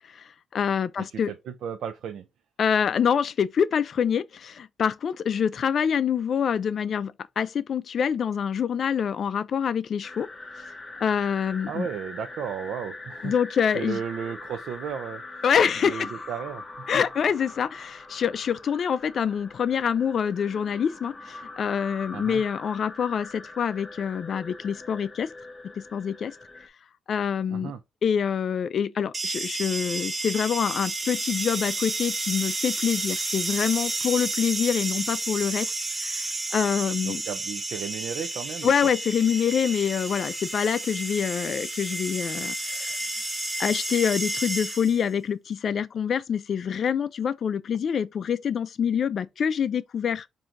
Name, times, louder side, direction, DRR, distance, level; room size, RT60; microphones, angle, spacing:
voice 1, 0.1-1.3 2.6-10.3 11.0-11.9 13.2-14.0 15.4-16.1 16.9-25.3 25.8-26.4 27.1-27.7 28.0-35.7 36.0-37.2 38.6-43.1 43.6-50.3, left 7 dB, 50° left, 0.3 m, -26 dB
voice 2, 1.0-2.3 11.7-13.3 13.7-15.4 15.8-16.6 22.1-22.4 27.5-27.8 37.1-38.9, right 7 dB, 75° right, 0.4 m, -34 dB
sound 1, 10.0-26.7, left 2 dB, 15° left, 0.6 m, -42 dB
sound 2, 29.1-45.1, right 2 dB, 20° right, 0.6 m, -31 dB
3.7 x 2.7 x 4.4 m
cardioid pair, 145°, 0 cm